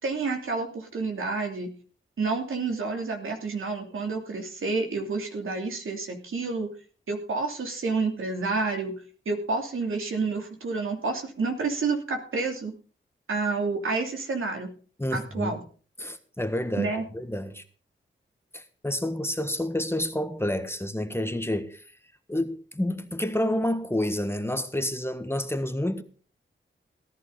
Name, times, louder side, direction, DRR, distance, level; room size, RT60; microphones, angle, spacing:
voice 1, 0.0-1.7 2.2-6.7 7.1-12.7 13.3-14.7 15.1-15.6 16.8-17.0, right 4 dB, 80° right, 2.9 m, -29 dB
voice 2, 15.0-15.6 16.0-17.6 18.5-21.8 22.3-26.0, left 1 dB, 10° left, 1.5 m, -29 dB
17.5 x 11.0 x 4.0 m
cardioid pair, 65°, 21 cm